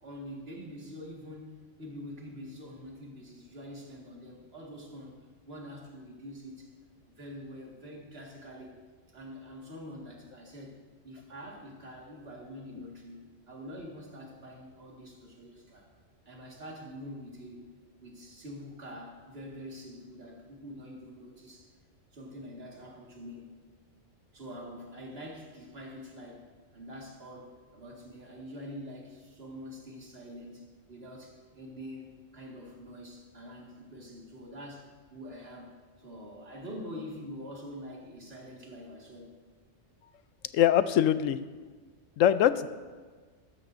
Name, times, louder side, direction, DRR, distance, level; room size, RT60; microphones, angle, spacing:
voice 1, 0.0-5.2 5.4-6.7 7.0-8.8 9.1-10.8 11.0-15.9 16.3-17.7 18.0-21.7 22.1-23.5 24.3-26.5 26.7-39.3, equal, 50° right, -2 dB, 2.2 m, -45 dB
voice 2, 40.5-41.4 42.2-42.7, left 10 dB, 80° left, 13 dB, 1.0 m, -22 dB
14.0 x 13.0 x 2.6 m, 1.4 s
omnidirectional pair, 1.3 m